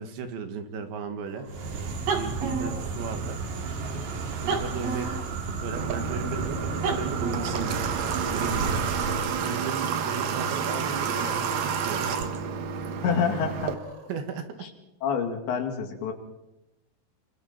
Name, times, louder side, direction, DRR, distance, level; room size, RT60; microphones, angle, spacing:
voice 1, 0.0-1.5 2.1-3.4 4.4-7.8 8.3-8.9 9.4-12.1 14.1-14.5, right 6 dB, 90° right, 6 dB, 4.3 m, -35 dB
Cat, 1.2-1.8 2.6-3.0 3.4-3.5 4.6-5.3 6.3-6.9 7.2-7.8 8.8-9.5 9.8-9.9 11.0-11.4 12.3-12.4 13.5-14.1, right 2 dB, 40° right, 2.2 m, -44 dB
sound 1, 1.5-9.4, right 4 dB, 55° right, 3.5 m, -31 dB
Water / Water tap faucet, 5.7-13.7, right 6 dB, 70° right, 1.6 m, -30 dB
voice 2, 13.0-13.7 14.6-14.7 15.0-16.1, left 6 dB, 80° left, 4 dB, 4.6 m, -27 dB
28.5 x 24.5 x 4.4 m, 0.92 s
omnidirectional pair, 5.1 m